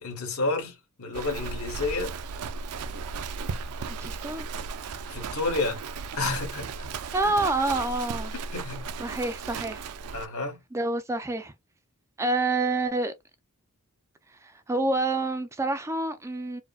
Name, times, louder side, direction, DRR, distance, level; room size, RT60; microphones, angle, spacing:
voice 1, 0.0-2.2 5.1-5.8 6.1-6.9 8.5-8.9 10.1-10.6, left 3 dB, 70° left, 1.5 m, -30 dB
Livestock farm animals working animals, 1.1-10.3, right 5 dB, 80° right, 0.4 m, -35 dB
voice 2, 4.0-4.5 7.1-8.3 9.0-9.8 10.7-11.5 12.2-13.1 14.4-16.6, right 2 dB, 15° right, 0.3 m, -27 dB
4.6 x 2.1 x 2.3 m
head